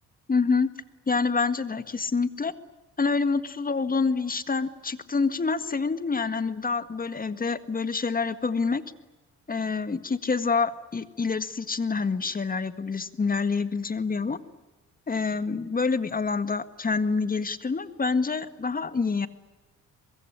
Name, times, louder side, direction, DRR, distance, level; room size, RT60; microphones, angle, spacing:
voice 1, 0.3-0.7 1.1-2.5 3.0-8.8 9.5-14.4 15.1-19.3, left 4 dB, 30° left, 12 dB, 1.8 m, -27 dB
24.0 x 22.0 x 10.0 m, 1.2 s
cardioid pair, 90°, 30 cm